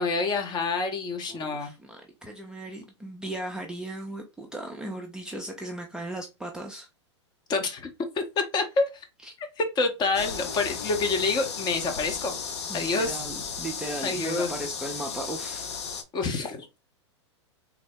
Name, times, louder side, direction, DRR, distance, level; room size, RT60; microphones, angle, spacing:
voice 1, 0.0-1.7 7.5-7.9 8.1-9.0 9.4-12.3 12.7-13.2 14.0-14.7 16.1-16.8, left 3 dB, 30° left, 0.8 m, -27 dB
voice 2, 1.3-6.9 9.2-9.3 12.7-15.7, right 1 dB, 5° right, 0.5 m, -37 dB
sound 1, 10.1-16.0, left 6 dB, 70° left, 0.6 m, -35 dB
3.5 x 2.0 x 3.5 m
hypercardioid pair, 100°, 15 cm